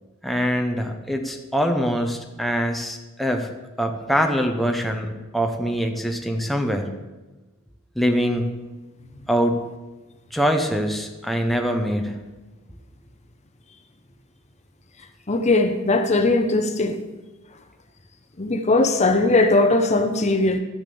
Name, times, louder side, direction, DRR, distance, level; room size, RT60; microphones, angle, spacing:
voice 1, 0.2-3.5 3.8-6.9 8.0-8.5 9.3-9.6 10.3-12.2, equal, ahead, 0.8 m, -23 dB
voice 2, 15.3-17.0 18.4-20.6, left 2 dB, 30° left, 0.8 m, -19 dB
12.0 x 6.8 x 6.9 m
head